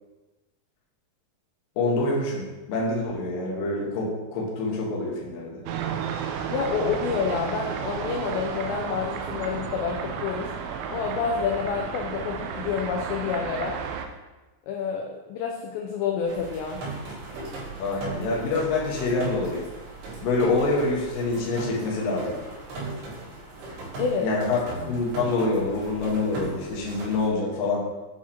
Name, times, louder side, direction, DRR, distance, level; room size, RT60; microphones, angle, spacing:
voice 1, 1.8-5.6 17.8-19.6 20.2-22.4 24.2-24.6 24.9-27.8, left 3 dB, 65° left, -3 dB, 2.3 m, -26 dB
sound 1, 5.7-14.1, right 7 dB, 85° right, 2.9 m, -32 dB
voice 2, 6.5-10.5 10.9-13.8 14.7-16.8 24.0-24.3, left 6 dB, 85° left, 1 dB, 2.6 m, -28 dB
sound 2, 16.2-27.3, right 3 dB, 65° right, 3.3 m, -38 dB
8.4 x 4.7 x 2.8 m, 1.1 s
omnidirectional pair, 5.3 m